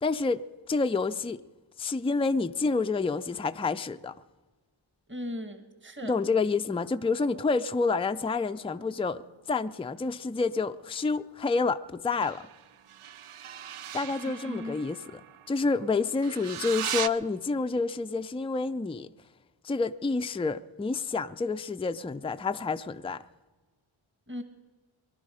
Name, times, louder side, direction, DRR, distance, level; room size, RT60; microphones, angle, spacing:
voice 1, 0.0-1.4 1.8-4.2 6.0-9.2 9.5-12.5 13.9-15.2 15.5-19.1 19.6-23.2, left 4 dB, 10° left, 0.4 m, -28 dB
voice 2, 5.1-6.2 14.3-14.8 24.3-24.4, left 1 dB, 25° right, 1.4 m, -37 dB
sound 1, 6.8-9.8 12.1-17.1, right 9 dB, 85° right, 0.6 m, -40 dB
22.5 x 11.5 x 4.9 m
wide cardioid pair, 55°, 49 cm